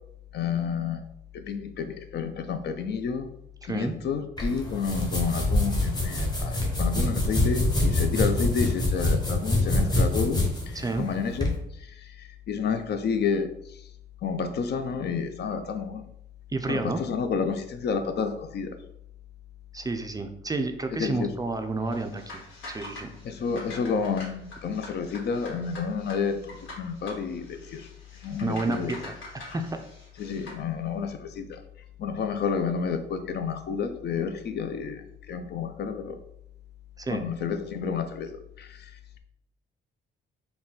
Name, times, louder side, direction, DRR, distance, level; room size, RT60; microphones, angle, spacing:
voice 1, 0.3-1.0 1.3-3.3 3.7-13.8 14.2-16.0 16.7-18.7 20.9-21.3 23.2-27.9 28.2-28.9 30.2-31.6 32.0-36.2 37.1-38.9, left 6 dB, 55° left, 8 dB, 0.5 m, -30 dB
voice 2, 3.6-3.9 10.7-11.1 16.5-17.0 19.7-23.1 28.4-29.1 29.5-29.8 37.0-37.2, right 3 dB, 20° right, 5 dB, 0.4 m, -30 dB
sound 1, 4.4-11.5, left 2 dB, 20° left, 1.0 m, -25 dB
sound 2, 21.9-30.6, left 2 dB, 75° left, 1.4 m, -45 dB
3.9 x 2.2 x 3.8 m, 0.76 s
cardioid pair, 90°, 20 cm